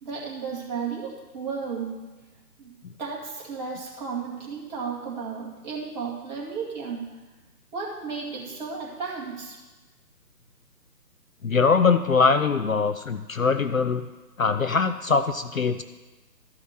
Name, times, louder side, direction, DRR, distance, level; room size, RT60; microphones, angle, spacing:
voice 1, 0.0-2.0 2.6-2.7 3.0-7.0 7.7-9.6, right 5 dB, 25° right, -4 dB, 2.1 m, -33 dB
voice 2, 11.4-14.1 14.4-15.8, left 5 dB, 55° left, 10 dB, 0.5 m, -22 dB
13.0 x 5.7 x 6.1 m, 1.2 s
figure-of-eight pair, 150°, 50 cm